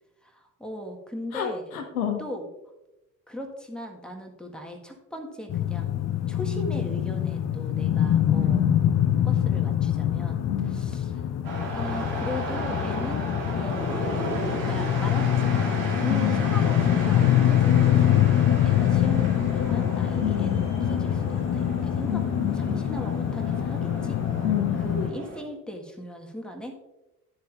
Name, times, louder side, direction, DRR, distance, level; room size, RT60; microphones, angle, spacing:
voice 1, 0.2-1.8 2.2-2.5 3.3-8.6 9.2-11.2 11.7-13.3 13.6-14.0 14.6-22.2 22.5-24.2 24.8-26.7, equal, ahead, 2 dB, 1.6 m, -38 dB
voice 2, 1.3-2.2 8.3-8.7 10.4-10.8 16.1-16.4 20.2-20.6 22.1-22.8 24.4-24.8, left 10 dB, 75° left, 6 dB, 1.1 m, -29 dB
sound 1, 5.5-25.1, left 10 dB, 40° left, 0.7 m, -24 dB
sound 2, 11.4-25.4, right 2 dB, 75° right, 2.4 m, -35 dB
12.5 x 7.4 x 2.5 m, 0.96 s
figure-of-eight pair, 45°, 43 cm